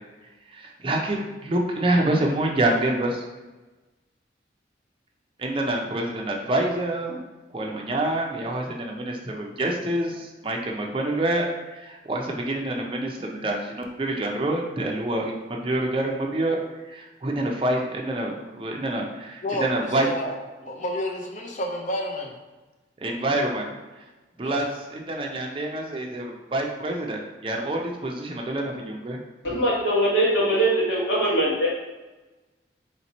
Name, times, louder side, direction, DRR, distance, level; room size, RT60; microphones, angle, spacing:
voice 1, 0.5-3.2 5.4-7.2 7.5-16.6 16.9-20.1 23.0-23.7 24.4-29.2, right 1 dB, 30° right, 0.5 m, -27 dB
voice 2, 19.4-22.3 24.4-24.7, left 1 dB, 40° left, 0.6 m, -30 dB
voice 3, 29.4-31.7, right 1 dB, 80° left, 1.4 m, -22 dB
3.2 x 2.9 x 4.1 m
head